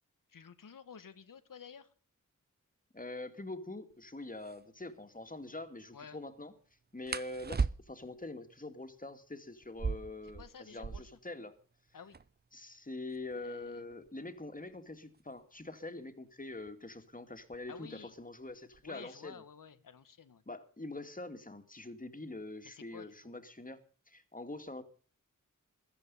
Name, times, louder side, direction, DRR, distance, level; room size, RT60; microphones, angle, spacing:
voice 1, 0.3-1.9 5.9-6.2 10.4-11.1 11.9-12.2 13.4-13.8 17.7-18.1 18.8-20.4 22.6-23.3, left 6 dB, 85° left, 11 dB, 1.5 m, -52 dB
voice 2, 2.9-6.5 6.9-11.5 12.5-19.4 20.5-23.8 24.1-24.8, left 2 dB, 25° left, 7 dB, 2.4 m, -44 dB
sound 1, 3.9-4.0 4.4-4.6 7.1-8.2 9.6-11.3 11.6-11.7 11.9-12.5 13.1-15.7 16.7-17.0 17.4-17.8 18.2-18.9, right 5 dB, 30° right, 0.6 m, -38 dB
16.0 x 13.5 x 5.6 m, 0.41 s
wide cardioid pair, 60°, 32 cm